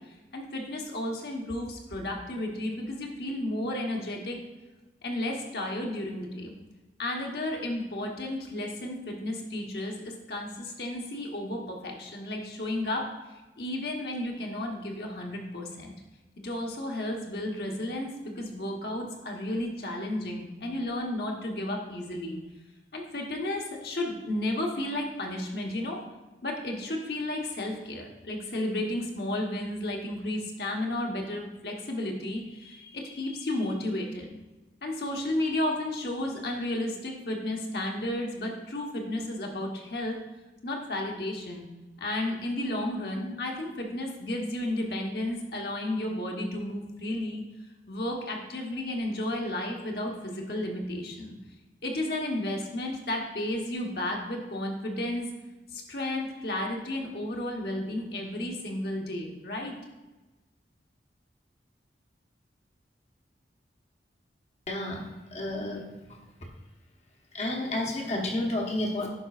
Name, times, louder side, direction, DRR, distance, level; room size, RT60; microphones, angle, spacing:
voice 1, 0.3-4.4 5.0-6.5 7.0-13.0 13.6-15.9 16.4-22.4 22.9-26.0 26.4-34.4 34.8-40.2 40.6-41.6 42.0-47.4 47.9-51.4 51.8-55.3 55.7-59.7, left 1 dB, 60° left, 0 dB, 1.1 m, -33 dB
voice 2, 64.7-65.0 65.3-65.8 66.1-66.5 67.3-69.1, left 1 dB, 35° left, 1 dB, 1.0 m, -31 dB
10.5 x 5.2 x 2.4 m, 1.1 s
head